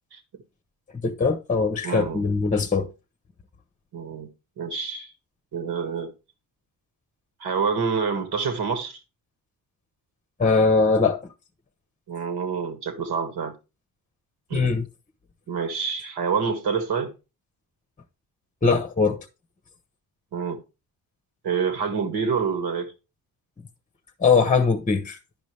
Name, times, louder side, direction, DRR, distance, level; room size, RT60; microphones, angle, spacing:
voice 1, 1.0-2.9 10.4-11.2 14.5-14.8 18.6-19.3 24.2-25.2, left 4 dB, 20° left, 0.9 m, -21 dB
voice 2, 1.8-2.2 3.9-4.3 4.6-5.1 5.5-6.1 7.4-9.0 12.1-13.5 14.5-14.8 15.5-17.1 20.3-20.6 21.4-22.9, right 5 dB, 65° right, 2.0 m, -27 dB
10.5 x 5.2 x 3.3 m
cardioid pair, 75°, 42 cm